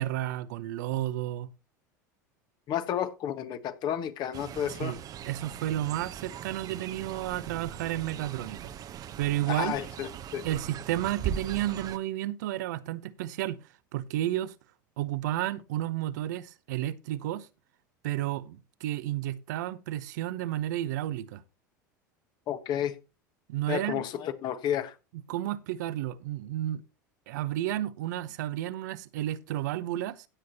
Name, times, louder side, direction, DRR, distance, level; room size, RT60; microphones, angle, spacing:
voice 1, 0.0-1.5 4.8-5.0 5.2-8.7 9.2-9.8 10.4-13.6 13.9-14.5 15.0-17.5 18.0-21.4 23.5-24.0 25.3-26.8 27.3-30.3, right 13 dB, 65° right, 0.8 m, -32 dB
voice 2, 2.7-4.9 9.5-10.4 22.5-22.9 23.7-25.0, left 10 dB, 45° left, 1.3 m, -31 dB
Fowl, 4.3-12.0, right 9 dB, 40° right, 0.8 m, -40 dB
16.5 x 7.6 x 2.8 m
hypercardioid pair, 80°, 10 cm